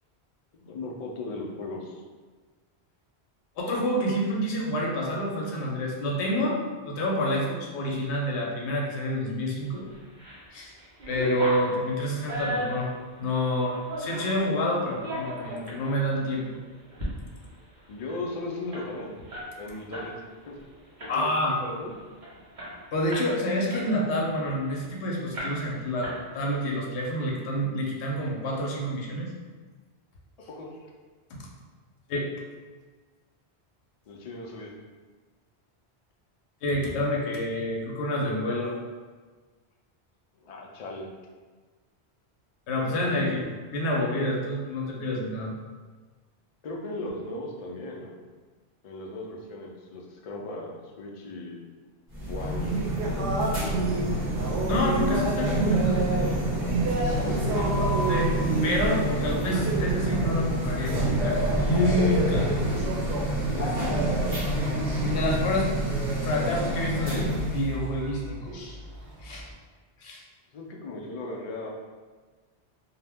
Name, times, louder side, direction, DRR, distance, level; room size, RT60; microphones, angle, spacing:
voice 1, 0.5-2.0 17.9-19.1 19.6-20.1 20.5-20.6 21.0-21.9 30.5-30.8 34.1-34.7 40.4-41.1 43.1-43.4 46.6-48.2 48.8-51.7 52.3-53.3 53.6-53.9 57.3-57.6 63.5-64.1 70.5-71.7, left 2 dB, 55° left, -1 dB, 0.4 m, -37 dB
voice 2, 3.6-9.9 10.5-10.7 11.1-12.9 13.2-16.5 21.1-21.6 22.9-29.3 32.1-32.3 36.6-38.8 42.7-43.4 43.7-45.5 54.7-56.1 58.1-58.3 58.6-62.5 65.0-65.7 66.2-68.8 69.2-69.5 70.0-70.2, left 1 dB, 85° left, -1 dB, 0.9 m, -28 dB
sound 1, 9.9-10.4 10.8-14.4 14.9-15.8 16.3-16.4 16.8-17.1 17.4-17.5 17.8-20.1 20.4-20.6 21.0-21.4 21.9-22.0 22.2-23.4 23.7-24.9 25.3-25.8 26.0-26.7, equal, 50° right, 0.8 m, -35 dB
sound 2, 52.1-67.7, right 1 dB, 35° right, 1.2 m, -27 dB
sound 3, 52.7-64.8 65.0-69.5, right 2 dB, 90° right, 0.9 m, -33 dB
2.6 x 2.1 x 3.4 m, 1.4 s
omnidirectional pair, 1.1 m